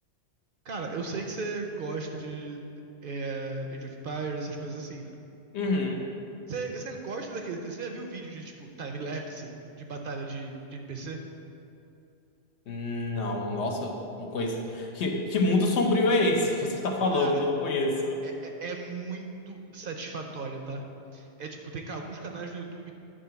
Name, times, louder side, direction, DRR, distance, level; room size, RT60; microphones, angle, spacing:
voice 1, 0.6-2.6 3.0-5.1 6.5-11.2 17.1-17.5 18.2-20.9 21.1-22.9, right 3 dB, 55° right, 3 dB, 0.7 m, -36 dB
voice 2, 5.5-6.0 12.7-18.2, left 2 dB, 70° left, 1 dB, 1.1 m, -26 dB
9.6 x 3.7 x 5.7 m, 2.7 s
omnidirectional pair, 1.2 m